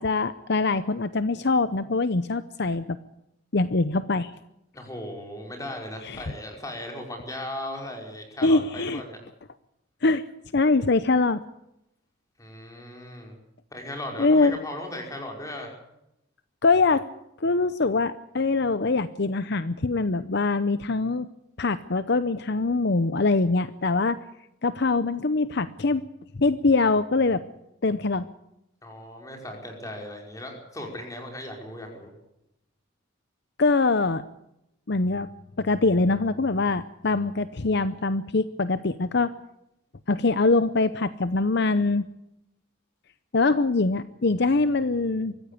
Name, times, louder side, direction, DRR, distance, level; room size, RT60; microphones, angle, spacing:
voice 1, 0.0-3.0 3.5-4.3 6.0-6.2 8.4-9.0 10.0-10.2 10.5-11.4 14.2-14.6 16.6-17.1 17.4-21.3 21.6-24.2 24.6-26.0 26.4-27.4 27.8-28.3 33.6-34.2 34.9-35.3 35.6-39.3 40.1-42.1 43.3-45.3, left 3 dB, 55° left, 13 dB, 0.7 m, -23 dB
voice 2, 4.7-9.2 12.4-13.3 13.7-15.7 28.8-32.1, left 1 dB, 15° left, 2 dB, 5.2 m, -37 dB
24.0 x 14.5 x 8.4 m, 0.84 s
head